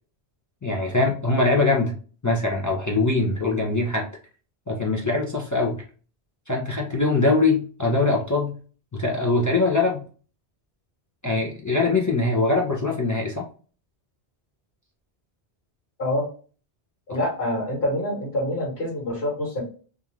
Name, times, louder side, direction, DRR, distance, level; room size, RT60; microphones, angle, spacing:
voice 1, 0.6-2.0 2.2-4.1 4.7-5.8 6.5-8.5 8.9-10.0 11.2-13.5, left 3 dB, 30° left, -2 dB, 0.3 m, -22 dB
voice 2, 17.1-19.6, left 1 dB, 70° left, -4 dB, 1.4 m, -26 dB
2.5 x 2.4 x 3.0 m, 0.40 s
omnidirectional pair, 1.1 m